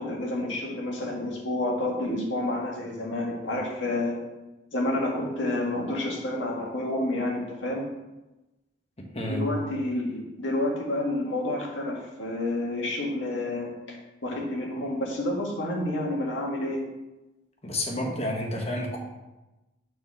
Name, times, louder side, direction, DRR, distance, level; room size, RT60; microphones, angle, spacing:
voice 1, 0.0-4.2 4.7-7.9 9.3-13.7 14.2-16.8, left 1 dB, 85° left, -1 dB, 1.8 m, -29 dB
voice 2, 9.0-9.5 17.6-19.0, left 1 dB, 35° left, 0 dB, 1.3 m, -30 dB
6.6 x 4.2 x 6.3 m, 1.0 s
head